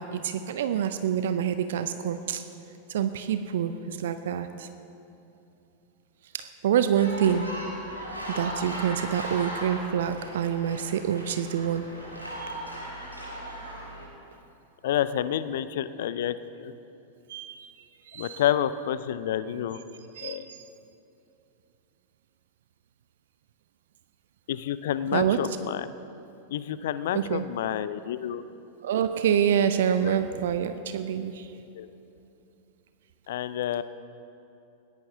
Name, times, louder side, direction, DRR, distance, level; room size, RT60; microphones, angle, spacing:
voice 1, 0.0-2.4 2.9-4.7 6.3-7.5 8.3-11.9 17.3-17.7 18.1-18.4 20.1-20.7 25.1-25.6 27.1-27.5 28.8-31.5, right 9 dB, 60° right, 10 dB, 0.5 m, -27 dB
sound 1, 7.0-14.1, equal, 90° left, 3.0 m, -37 dB
voice 2, 14.8-16.7 18.1-19.8 20.2-20.5 24.5-25.9 26.5-28.4 30.1-30.2 31.8-31.9 33.3-33.8, left 10 dB, 55° left, 14 dB, 0.5 m, -29 dB
21.0 x 17.0 x 2.7 m, 2.8 s
figure-of-eight pair, 90°, 0 cm